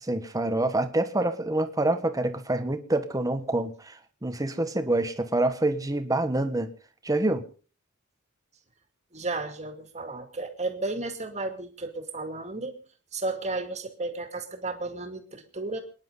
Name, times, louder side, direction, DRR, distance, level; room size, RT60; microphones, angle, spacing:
voice 1, 0.0-6.7 7.0-7.4, right 2 dB, 15° right, 8 dB, 1.4 m, -26 dB
voice 2, 9.1-12.8 13.1-15.8, right 2 dB, 35° right, 6 dB, 2.5 m, -33 dB
28.5 x 10.5 x 4.0 m, 0.39 s
head